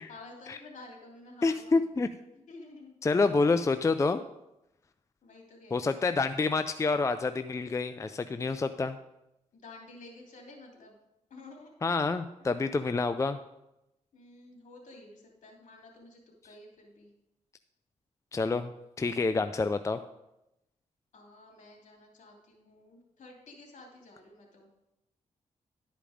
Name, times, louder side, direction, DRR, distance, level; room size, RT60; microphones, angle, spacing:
voice 1, 0.0-1.8 2.3-2.9 5.2-5.9 9.5-10.9 11.3-11.7 12.4-12.6 14.1-17.1 21.1-24.7, left 2 dB, 70° left, 0 dB, 2.9 m, -51 dB
voice 2, 1.4-2.1 3.0-4.2 5.7-9.0 11.8-13.4 18.3-18.7 19.0-20.0, left 3 dB, 25° left, 10 dB, 0.4 m, -28 dB
11.5 x 5.1 x 5.0 m, 0.90 s
cardioid pair, 75°, 13 cm